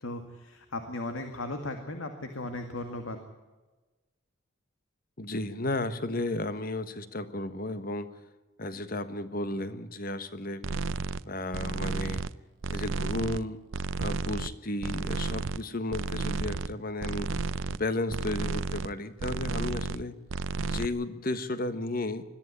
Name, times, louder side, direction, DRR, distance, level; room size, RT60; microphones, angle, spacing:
voice 1, 0.0-3.2, left 2 dB, 75° left, 6 dB, 2.1 m, -36 dB
voice 2, 5.2-8.1 8.6-10.6 11.2-12.2 12.7-13.6 14.0-17.3 17.7-20.1 20.7-22.2, left 2 dB, 45° left, 11 dB, 1.4 m, -33 dB
sound 1, 10.6-11.2 11.5-12.3 12.6-13.4 13.7-14.5 14.8-15.6 15.9-16.7 17.0-17.8 18.1-18.9 19.2-20.0 20.3-20.9, right 4 dB, 70° right, 0.6 m, -32 dB
21.5 x 14.0 x 9.9 m, 1.2 s
head